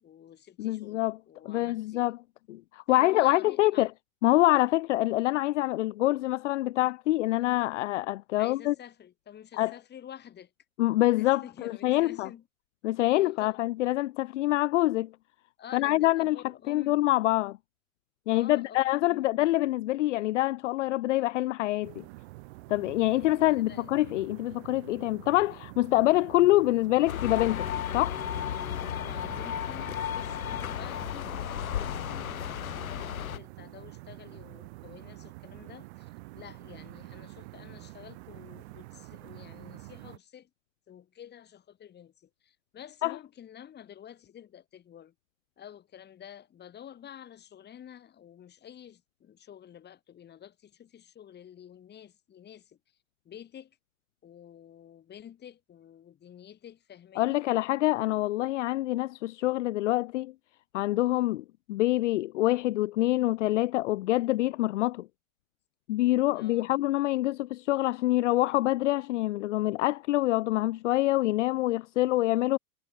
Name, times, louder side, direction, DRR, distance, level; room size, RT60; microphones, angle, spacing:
voice 1, 0.0-2.1 2.9-3.9 8.4-10.5 11.1-12.4 13.1-13.6 15.6-17.0 18.3-18.8 19.1-19.3 23.1-23.9 28.9-40.5 40.9-45.1 45.6-52.8 53.2-53.8 54.2-57.5 66.3-66.7, left 9 dB, 25° left, 3.2 m, -49 dB
voice 2, 0.6-1.2 1.5-2.2 2.5-3.9 4.2-8.7 9.6-9.7 10.8-12.3 12.8-15.1 15.7-16.4 16.7-17.6 18.3-22.0 22.7-27.7 27.9-28.2 43.0-43.1 57.2-60.3 60.7-65.1 65.9-72.6, left 17 dB, 55° left, 0.8 m, -26 dB
sound 1, 21.8-40.2, right 22 dB, 50° right, 2.0 m, -47 dB
sound 2, 27.1-33.4, left 10 dB, 75° left, 1.3 m, -34 dB
figure-of-eight pair, 100°, 43 cm